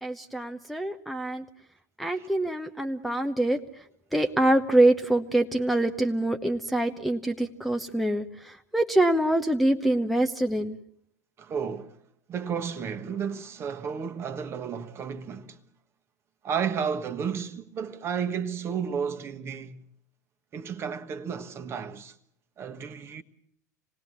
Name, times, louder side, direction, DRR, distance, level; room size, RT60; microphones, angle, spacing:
voice 1, 0.0-1.4 2.0-3.6 4.1-10.8, right 1 dB, ahead, 0.9 m, -25 dB
voice 2, 11.4-12.0 12.3-15.6 16.4-19.8 20.5-22.1 22.6-23.2, right 7 dB, 30° right, 1.4 m, -32 dB
26.5 x 19.0 x 7.3 m
figure-of-eight pair, 85°, 9 cm